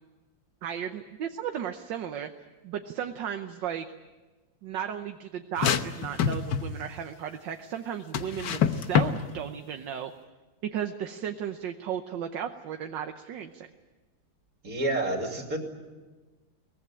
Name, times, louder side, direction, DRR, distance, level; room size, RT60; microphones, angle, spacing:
voice 1, 0.6-2.3 2.6-3.9 4.6-10.1 10.7-13.7, right 9 dB, 75° right, 6 dB, 1.6 m, -35 dB
sound 1, 5.6-6.8 8.1-9.2, left 8 dB, 70° left, 1.6 m, -25 dB
voice 2, 14.6-15.6, right 2 dB, 50° right, 3 dB, 3.4 m, -29 dB
23.0 x 19.5 x 9.9 m, 1.3 s
omnidirectional pair, 2.1 m